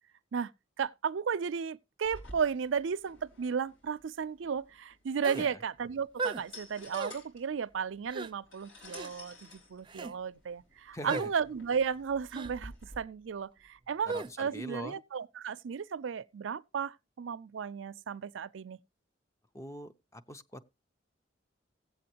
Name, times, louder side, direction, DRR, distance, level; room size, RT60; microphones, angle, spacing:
voice 1, 0.8-18.8, right 6 dB, 80° right, 0.4 m, -34 dB
sound 1, 2.0-13.0, left 1 dB, 70° left, 4.0 m, -52 dB
sound 2, 5.2-5.5 6.2-6.4 6.9-7.2 8.1-8.3 8.9-9.1 9.9-10.1 11.1-11.3 12.3-12.5 14.1-14.3, right 3 dB, 25° right, 0.5 m, -36 dB
voice 2, 10.9-11.3 14.0-15.0 19.5-20.6, left 1 dB, 15° left, 0.6 m, -42 dB
18.0 x 7.7 x 2.8 m
head